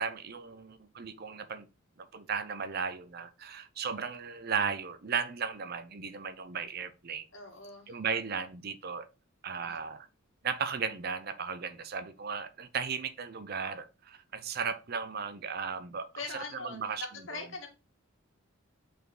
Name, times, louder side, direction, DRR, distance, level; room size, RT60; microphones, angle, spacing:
voice 1, 0.0-1.7 2.0-7.3 7.9-9.1 9.4-10.1 10.4-17.1 17.3-17.4, right 6 dB, 50° right, 0.6 m, -36 dB
voice 2, 7.3-7.9 9.6-9.8 16.2-17.7, left 3 dB, 70° left, 2.0 m, -42 dB
5.4 x 4.5 x 3.8 m
head